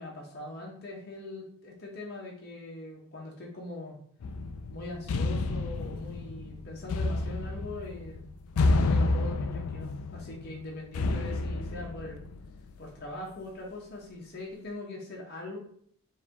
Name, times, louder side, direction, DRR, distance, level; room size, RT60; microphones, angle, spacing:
voice 1, 0.0-4.0 4.7-8.2 8.7-12.2 12.8-15.6, left 2 dB, 45° left, -2 dB, 1.1 m, -41 dB
sound 1, 4.2-12.9, left 2 dB, 80° left, 0.4 m, -30 dB
4.6 x 2.8 x 3.4 m, 0.62 s
head